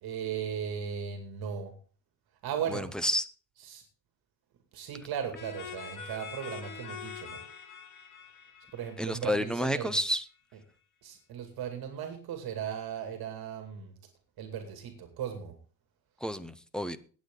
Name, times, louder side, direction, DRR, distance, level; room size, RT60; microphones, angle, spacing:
voice 1, 0.0-1.8 2.4-2.9 3.6-3.8 4.7-7.4 8.7-9.9 11.0-13.9 14.4-15.6, right 8 dB, 65° right, 5 dB, 2.4 m, -37 dB
voice 2, 2.7-3.2 9.0-10.2 16.2-17.0, equal, ahead, 13 dB, 0.5 m, -30 dB
sound 1, 5.3-9.9, left 6 dB, 50° left, 2.2 m, -45 dB
18.5 x 8.3 x 3.8 m, 0.39 s
cardioid pair, 175°, 40 cm